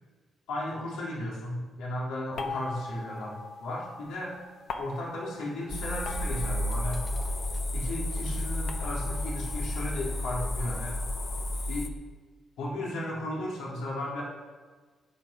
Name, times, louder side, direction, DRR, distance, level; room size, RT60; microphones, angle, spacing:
voice 1, 0.5-4.4 4.8-7.0 7.7-11.0 11.7-11.9 12.6-14.2, left 1 dB, 90° left, -3 dB, 3.6 m, -35 dB
sound 1, 2.4-7.6 7.9-10.8, left 4 dB, 55° left, 1.1 m, -43 dB
sound 2, 5.7-11.9, left 1 dB, 25° left, 0.7 m, -32 dB
12.0 x 9.5 x 5.9 m, 1.4 s
cardioid pair, 170°, 0 cm